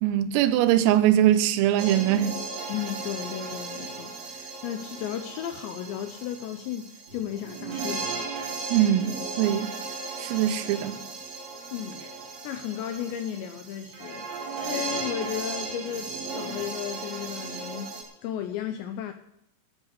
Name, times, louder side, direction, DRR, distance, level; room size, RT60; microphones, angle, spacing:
voice 1, 0.0-2.4 8.7-9.7 10.2-11.0, right 12 dB, 85° right, 3.5 m, -22 dB
sound 1, 1.8-18.0, right 4 dB, 55° right, 4.5 m, -36 dB
voice 2, 2.7-8.3 11.7-12.0 12.4-18.0 18.2-19.1, left 10 dB, 85° left, 2.5 m, -34 dB
13.0 x 8.4 x 8.2 m
omnidirectional pair, 5.9 m